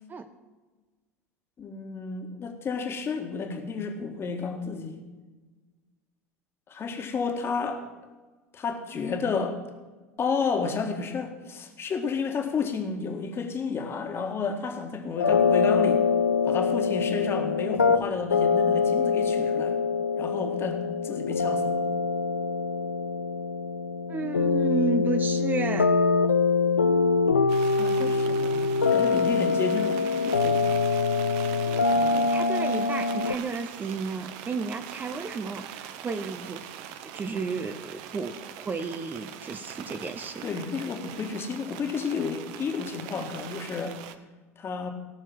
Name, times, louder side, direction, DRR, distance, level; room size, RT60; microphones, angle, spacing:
voice 1, 1.6-5.0 6.7-7.8 8.5-9.6 10.2-16.0 16.4-19.8 20.2-21.8 27.8-30.6 31.9-32.3 40.4-44.0 44.6-44.9, left 5 dB, 30° left, 4 dB, 1.8 m, -31 dB
sound 1, 15.2-33.3, left 4 dB, 85° left, 0.4 m, -24 dB
voice 2, 24.1-25.9 32.1-36.6 37.1-40.5, right 4 dB, 25° right, 8 dB, 0.8 m, -32 dB
sound 2, 27.5-44.1, right 10 dB, 55° right, 0.8 m, -42 dB
18.0 x 6.5 x 6.1 m, 1.3 s
figure-of-eight pair, 75°, 8 cm